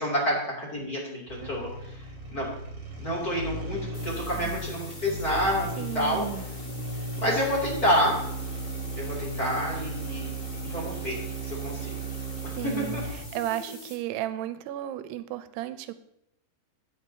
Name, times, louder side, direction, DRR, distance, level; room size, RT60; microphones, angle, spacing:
voice 1, 0.0-1.7 2.3-2.5 3.0-6.2 7.2-8.2 8.9-10.3 10.6-11.9 12.6-13.0 13.7-13.8, equal, 25° left, -4 dB, 3.0 m, -28 dB
sound 1, 1.3-13.4, right 2 dB, 45° right, 1.8 m, -36 dB
sound 2, 3.9-13.9, left 3 dB, 50° left, 3.9 m, -46 dB
voice 2, 5.8-6.4 12.6-13.0 13.3-15.9, right 13 dB, 90° right, 12 dB, 2.7 m, -34 dB
16.5 x 6.7 x 2.9 m, 0.78 s
omnidirectional pair, 4.6 m